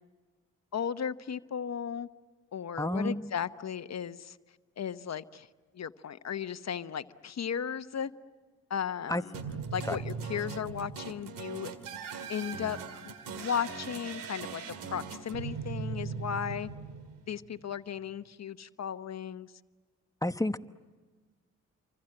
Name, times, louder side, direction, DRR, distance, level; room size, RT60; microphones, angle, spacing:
voice 1, 0.7-2.1 2.5-4.4 4.8-5.5 5.7-8.1 8.7-9.2 9.7-11.7 12.3-12.8 13.0-16.7 17.3-19.5, left 8 dB, 55° left, 12 dB, 1.0 m, -35 dB
voice 2, 2.8-3.3 9.1-9.2 9.8-10.0 20.2-20.6, left 1 dB, 10° left, 11 dB, 1.0 m, -30 dB
sound 1, 9.3-17.6, right 5 dB, 85° right, 2.0 m, -39 dB
29.0 x 24.5 x 7.8 m, 1.4 s
supercardioid pair, 50°, 32 cm